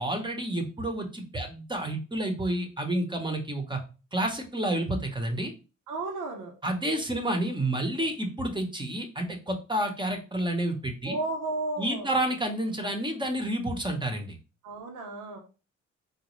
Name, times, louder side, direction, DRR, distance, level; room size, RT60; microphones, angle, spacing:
voice 1, 0.0-3.8 4.1-5.5 6.6-11.1 11.8-14.4, right 1 dB, 15° right, 4 dB, 0.7 m, -30 dB
voice 2, 5.9-6.5 11.0-12.1 14.6-15.4, right 2 dB, 85° right, 3 dB, 0.8 m, -33 dB
3.9 x 2.1 x 3.0 m, 0.33 s
cardioid pair, 90°, 30 cm